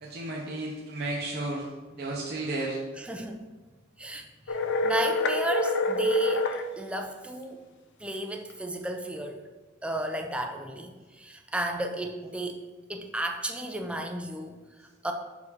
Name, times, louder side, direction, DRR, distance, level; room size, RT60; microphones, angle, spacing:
voice 1, 0.0-1.7 2.0-2.8, right 2 dB, 50° right, -3 dB, 0.8 m, -33 dB
voice 2, 3.0-3.4 4.0-4.6 4.8-7.6 8.0-9.4 9.8-12.6 12.9-15.1, right 2 dB, 5° right, 4 dB, 0.5 m, -33 dB
sound 1, 4.5-6.6, left 3 dB, 60° left, 0.5 m, -27 dB
6.1 x 4.8 x 4.1 m, 1.3 s
head